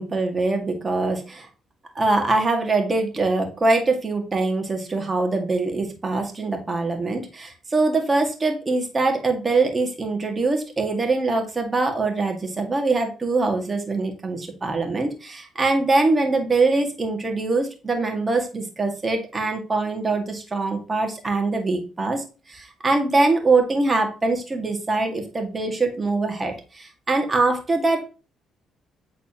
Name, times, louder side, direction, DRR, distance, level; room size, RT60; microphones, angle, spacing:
voice 1, 0.0-1.5 2.0-28.0, right 3 dB, 30° right, 3 dB, 2.0 m, -23 dB
8.4 x 4.1 x 3.0 m, 0.34 s
supercardioid pair, 70°, 0 cm